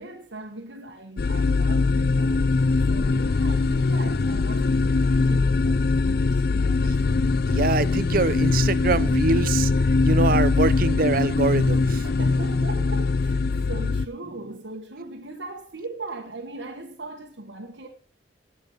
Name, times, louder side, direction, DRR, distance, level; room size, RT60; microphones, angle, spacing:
voice 1, 0.0-7.3 12.0-17.9, right 2 dB, 85° right, 1.5 m, -39 dB
sound 1, 1.2-14.1, left 3 dB, 55° left, 0.5 m, -22 dB
voice 2, 7.5-9.7 10.0-12.0, right 3 dB, 50° right, 0.6 m, -24 dB
18.5 x 6.3 x 5.1 m
head